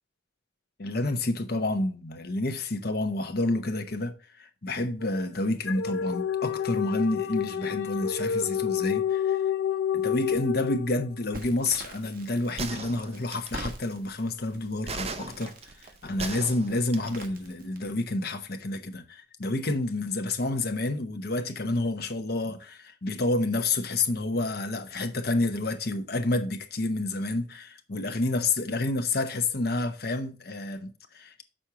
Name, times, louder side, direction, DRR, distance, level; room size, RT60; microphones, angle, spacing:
voice 1, 0.8-9.4 9.9-15.5 16.0-31.4, left 2 dB, 55° left, 0.9 m, -29 dB
sound 1, 5.0-11.4, left 8 dB, 80° left, 0.6 m, -29 dB
Crackle, 11.3-18.1, right 2 dB, 50° right, 1.4 m, -45 dB
sound 2, 12.6-13.7 14.9-17.2, right 4 dB, 35° right, 0.7 m, -37 dB
6.4 x 4.3 x 5.8 m
head